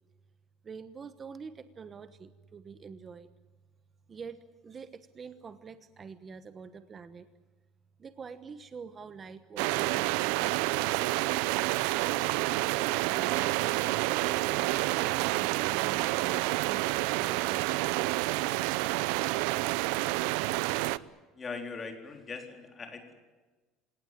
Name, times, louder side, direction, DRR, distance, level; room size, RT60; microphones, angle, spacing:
voice 1, 0.6-3.3 4.1-7.3 8.0-11.1 12.8-17.8, right 5 dB, 25° right, 12 dB, 1.1 m, -46 dB
sound 1, 9.6-21.0, right 19 dB, 90° right, 0.7 m, -29 dB
voice 2, 21.3-23.1, left 4 dB, 25° left, 5 dB, 3.9 m, -40 dB
28.5 x 18.0 x 9.1 m, 1.3 s
cardioid pair, 150°, 0 cm